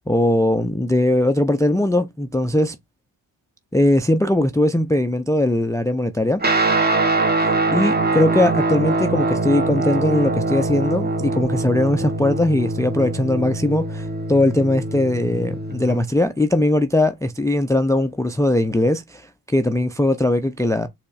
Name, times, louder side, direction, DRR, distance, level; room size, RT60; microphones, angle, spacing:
voice 1, 0.1-2.7 3.7-6.4 7.4-20.9, left 1 dB, 5° left, 0.4 m, -20 dB
Guitar, 6.4-16.0, right 2 dB, 20° right, 1.0 m, -23 dB
4.3 x 2.4 x 3.1 m
supercardioid pair, 45°, 45 cm